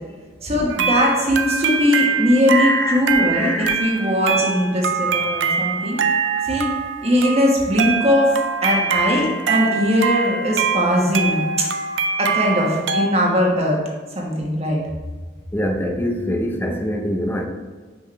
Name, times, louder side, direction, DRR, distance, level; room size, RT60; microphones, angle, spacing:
voice 1, 0.4-6.0 6.4-6.7 7.0-8.3 8.6-11.5 12.2-13.8 14.1-14.8, equal, 35° right, -1 dB, 1.3 m, -20 dB
sound 1, 0.7-13.1, right 5 dB, 90° right, 0.5 m, -23 dB
voice 2, 2.5-3.0 3.3-3.8 15.5-17.5, left 1 dB, 10° left, 3 dB, 0.6 m, -24 dB
6.0 x 5.2 x 3.2 m, 1.4 s
head